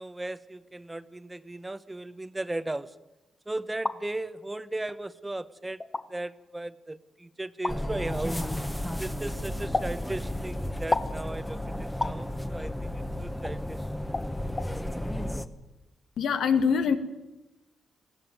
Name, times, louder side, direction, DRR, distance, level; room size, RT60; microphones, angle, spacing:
voice 1, 0.0-2.9 3.5-5.8 6.1-8.5 8.9-11.6 12.0-13.8, right 2 dB, 15° right, 14 dB, 0.9 m, -36 dB
sound 1, 3.6-4.0 4.9-5.0 5.8-6.0 7.6-7.8 9.7-9.9 10.9-11.2 12.0-12.2 13.4-13.6 14.1-14.3 14.6-14.7, left 2 dB, 25° left, 1.5 m, -29 dB
sound 2, 7.7-15.5, left 1 dB, 10° left, 1.3 m, -33 dB
voice 2, 16.2-17.0, left 6 dB, 85° left, 9 dB, 1.9 m, -23 dB
21.0 x 16.5 x 9.4 m, 1.0 s
cardioid pair, 95°, 0 cm